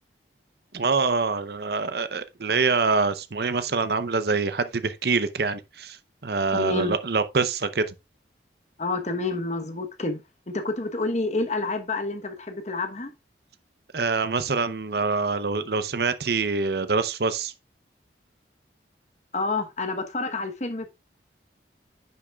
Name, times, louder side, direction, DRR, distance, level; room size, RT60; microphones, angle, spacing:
voice 1, 0.7-6.0 6.2-7.9 13.9-17.5, right 4 dB, 60° right, 0.7 m, -25 dB
voice 2, 6.5-7.0 8.8-10.2 10.5-13.1 19.3-20.9, left 3 dB, 40° left, 1.1 m, -28 dB
9.9 x 7.0 x 2.4 m
head